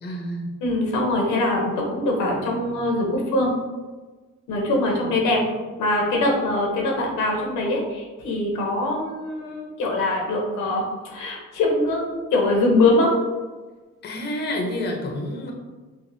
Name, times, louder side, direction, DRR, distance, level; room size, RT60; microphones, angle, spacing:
voice 1, 0.0-0.5 4.9-5.0 14.0-15.5, left 1 dB, 35° left, 1 dB, 0.6 m, -29 dB
voice 2, 0.6-3.5 4.5-5.4 5.8-13.1, left 2 dB, 90° left, 0 dB, 0.8 m, -23 dB
3.3 x 2.1 x 2.6 m, 1.3 s
cardioid pair, 90°, 30 cm